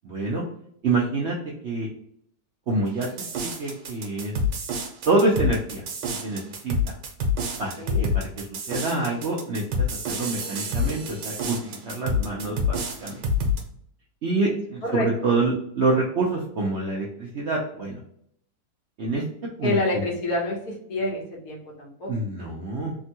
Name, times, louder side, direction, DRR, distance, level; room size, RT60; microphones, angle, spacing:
voice 1, 0.0-0.4 0.8-1.4 1.6-1.9 2.7-3.1 3.4-4.3 5.0-5.8 6.2-6.8 7.6-12.8 13.0-13.2 14.2-18.0 19.0-19.2 19.6-19.8 22.1-23.0, right 2 dB, 60° right, -3 dB, 0.7 m, -26 dB
sound 1, 3.0-13.6, left 3 dB, 85° right, 1.4 m, -27 dB
voice 2, 7.8-8.1 14.9-15.1 19.6-22.1, left 1 dB, 65° left, -2 dB, 1.5 m, -27 dB
3.5 x 2.2 x 2.7 m, 0.68 s
omnidirectional pair, 1.8 m